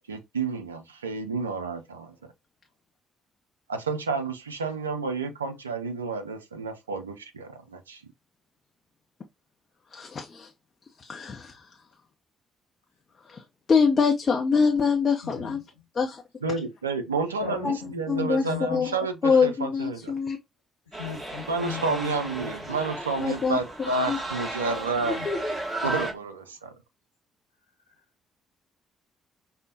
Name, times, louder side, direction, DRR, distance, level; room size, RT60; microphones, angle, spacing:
voice 1, 0.1-2.3 3.7-8.0 16.4-20.1 21.5-25.2 25.8-26.7, right 4 dB, 85° right, 0.3 m, -30 dB
voice 2, 9.9-10.5 11.0-11.7 13.3-13.4 13.7-15.6 16.0-16.2 17.6-17.8 18.1-18.4 18.7-20.4 23.2-23.6 24.1-24.2 25.1-25.5, left 5 dB, 40° left, 0.6 m, -24 dB
voice 3, 15.2-15.6 17.2-18.9 20.9-23.0 23.4-23.7 25.1-25.3 25.8-26.2, left 6 dB, 85° left, 1.1 m, -38 dB
sound 1, 20.9-26.1, right 2 dB, 15° right, 1.3 m, -34 dB
5.1 x 2.1 x 2.6 m
figure-of-eight pair, 45°, 0 cm